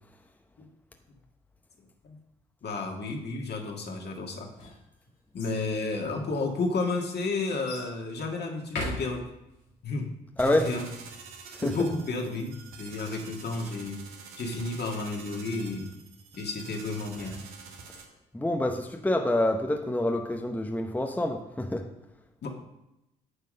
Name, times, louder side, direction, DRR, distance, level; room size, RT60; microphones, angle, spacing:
voice 1, 2.6-4.5 5.3-9.3 9.8-10.1 10.4-10.9 11.6-14.0 14.4-15.9 16.3-17.4 22.4-22.5, left 3 dB, 50° left, 1 dB, 1.8 m, -32 dB
sound 1, 4.3-5.6 6.4-6.5 7.7-7.9 8.6-9.6 16.7-18.0, left 2 dB, 90° left, 1.8 m, -40 dB
voice 2, 10.4-10.7 11.5-11.8 18.3-21.9, left 1 dB, 5° left, 3 dB, 0.9 m, -27 dB
sound 2, 10.4-18.0, right 5 dB, 75° right, 1.3 m, -47 dB
9.7 x 3.6 x 6.5 m, 0.90 s
hypercardioid pair, 55°, 21 cm